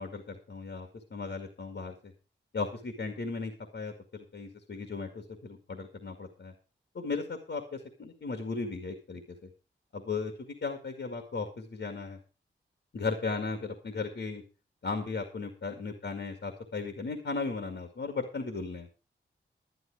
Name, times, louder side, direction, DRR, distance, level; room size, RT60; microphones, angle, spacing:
voice 1, 0.0-1.9 2.5-6.5 6.9-9.2 9.9-12.2 12.9-14.4 14.8-18.9, left 4 dB, 65° left, 5 dB, 2.1 m, -36 dB
11.0 x 11.0 x 4.9 m, 0.33 s
cardioid pair, 60°, 20 cm